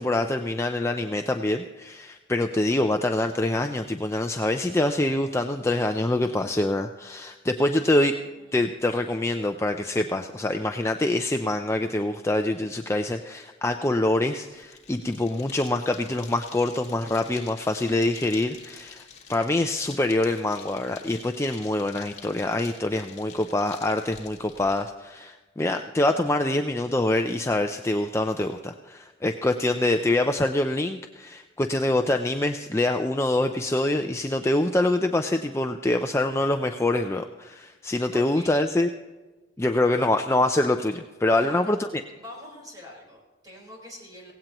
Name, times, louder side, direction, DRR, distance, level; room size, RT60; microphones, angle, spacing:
voice 1, 0.0-8.2 8.5-19.0 19.3-38.9 39.6-41.8, left 1 dB, 15° left, 6 dB, 0.4 m, -25 dB
voice 2, 7.5-8.0 8.3-8.5 38.1-38.5 41.3-41.8 42.1-44.3, left 1 dB, 20° right, -1 dB, 4.5 m, -44 dB
sound 1, 14.5-24.8, left 7 dB, 40° left, 1.8 m, -48 dB
17.5 x 16.5 x 3.0 m, 1.2 s
head